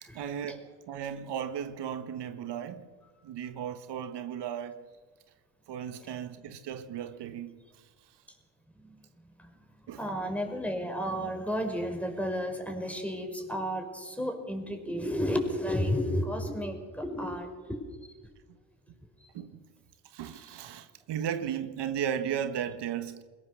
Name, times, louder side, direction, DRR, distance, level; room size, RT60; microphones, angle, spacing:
voice 1, 0.0-2.9 3.2-4.8 5.7-7.5 9.9-10.1 19.3-19.6 20.0-23.2, right 9 dB, 80° right, 1.4 m, -35 dB
voice 2, 10.0-17.8, equal, 5° left, 5.4 m, -32 dB
22.0 x 17.5 x 6.7 m
cardioid pair, 65°, 40 cm